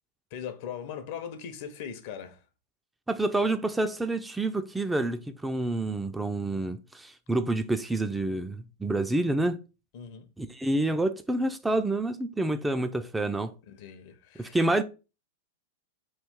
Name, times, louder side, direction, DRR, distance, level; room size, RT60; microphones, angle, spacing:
voice 1, 0.3-2.4 9.9-10.3 13.7-14.6, left 8 dB, 55° left, 0.7 m, -40 dB
voice 2, 3.1-9.6 10.4-13.5 14.4-14.8, right 2 dB, 10° right, 0.3 m, -28 dB
3.1 x 2.4 x 3.6 m
hypercardioid pair, 105°, 0 cm